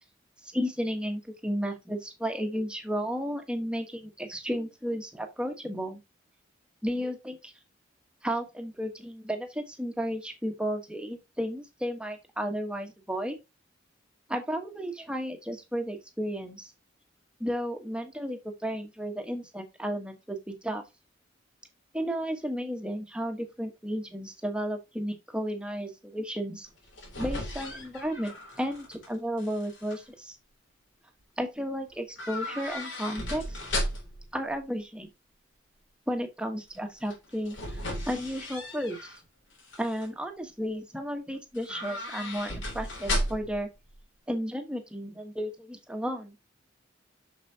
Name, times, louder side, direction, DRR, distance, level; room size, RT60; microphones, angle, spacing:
voice 1, 0.4-6.0 6.8-7.5 8.2-13.4 14.3-16.7 17.4-20.8 21.9-26.7 27.2-30.4 31.4-33.6 34.3-35.1 36.1-39.1 39.8-43.7 44.3-46.3, equal, 5° right, 1.3 m, -33 dB
sound 1, 26.7-29.1 29.4-30.0 32.2-34.3 37.0-39.2 39.6-40.1 41.5-43.6 43.9-44.0, left 1 dB, 80° left, 3.5 m, -35 dB
7.0 x 6.6 x 2.9 m
head